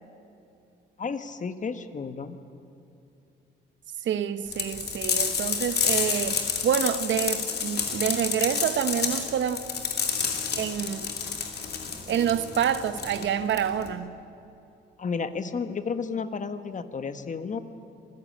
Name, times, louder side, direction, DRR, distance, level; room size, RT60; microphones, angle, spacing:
voice 1, 1.0-2.4 15.0-17.6, left 5 dB, 40° left, 1.4 m, -32 dB
voice 2, 4.0-9.6 10.6-11.1 12.1-14.2, right 9 dB, 70° right, 1.1 m, -27 dB
sound 1, 4.5-13.9, left 6 dB, 55° left, 2.8 m, -29 dB
26.5 x 15.5 x 8.8 m
cardioid pair, 90°, 20 cm